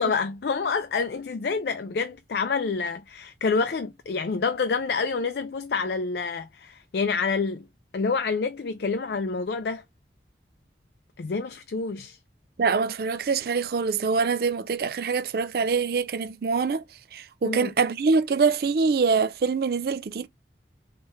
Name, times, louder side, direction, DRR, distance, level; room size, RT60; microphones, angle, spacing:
voice 1, 0.0-7.7 7.9-9.8 11.2-12.2 17.4-17.7, left 4 dB, 60° left, 0.4 m, -27 dB
voice 2, 12.6-16.8 17.1-20.3, right 5 dB, 55° right, 0.4 m, -24 dB
3.3 x 3.2 x 2.9 m
head